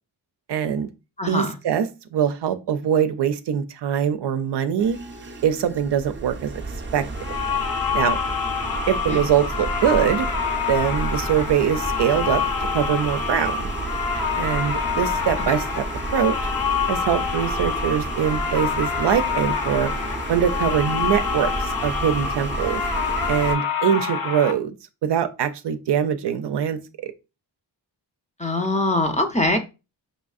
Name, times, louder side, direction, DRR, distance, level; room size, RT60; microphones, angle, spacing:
voice 1, 0.5-0.9 1.3-5.0 5.4-6.6 6.9-7.1 7.9-8.2 8.9-10.3 10.7-12.4 12.7-13.7 14.4-15.9 16.1-16.4 16.9-19.9 20.3-22.8 23.3-24.7 25.0-27.1, right 9 dB, 70° right, 0.5 m, -23 dB
voice 2, 1.2-1.5 9.1-9.2 28.4-29.6, left 2 dB, 15° left, 0.6 m, -22 dB
sound 1, 4.8-23.6, right 2 dB, 25° right, 0.6 m, -32 dB
sound 2, 7.2-24.5, left 6 dB, 55° left, 0.8 m, -27 dB
5.3 x 2.5 x 2.4 m
cardioid pair, 70°, 43 cm